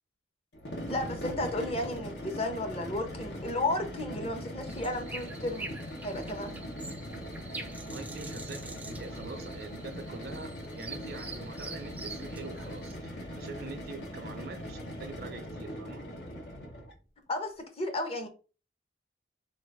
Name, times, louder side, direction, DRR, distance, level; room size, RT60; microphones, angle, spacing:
sound 1, 0.5-17.0, equal, 60° left, 1.1 m, -40 dB
voice 1, 0.9-5.7 6.0-6.6 17.3-18.3, left 1 dB, 35° left, 0.9 m, -33 dB
sound 2, 4.7-12.9, right 3 dB, 10° right, 0.4 m, -45 dB
voice 2, 7.5-16.0, right 3 dB, 55° right, 0.6 m, -44 dB
4.0 x 2.5 x 4.7 m
head